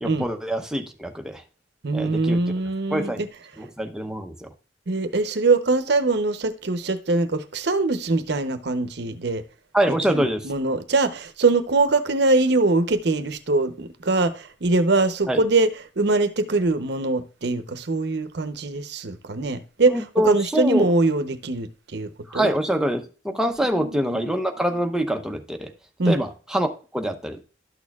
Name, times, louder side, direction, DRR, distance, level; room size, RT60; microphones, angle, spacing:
voice 1, 0.0-1.4 1.9-2.4 2.9-3.2 3.6-4.5 9.7-10.5 15.3-15.4 19.9-20.9 22.3-25.7 26.1-27.4, equal, 5° right, 0.8 m, -25 dB
voice 2, 1.8-3.3 4.9-9.4 10.1-15.7 16.0-22.5 23.7-24.3 26.0-26.2, right 3 dB, 65° right, 0.8 m, -23 dB
12.0 x 6.4 x 2.3 m
head